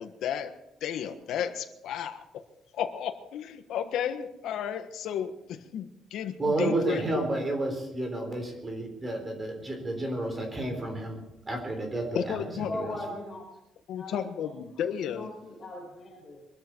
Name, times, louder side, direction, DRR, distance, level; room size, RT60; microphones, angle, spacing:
voice 1, 0.0-2.4 2.7-7.0 12.1-12.7 13.9-15.3, left 9 dB, 70° left, 8 dB, 1.4 m, -33 dB
voice 2, 6.4-11.2 11.5-13.0, right 2 dB, 20° right, 4 dB, 3.8 m, -31 dB
voice 3, 12.3-13.5 13.9-14.5 15.0-16.5, left 2 dB, 20° left, -1 dB, 5.0 m, -40 dB
23.0 x 13.0 x 4.6 m, 0.86 s
cardioid pair, 170°, 0 cm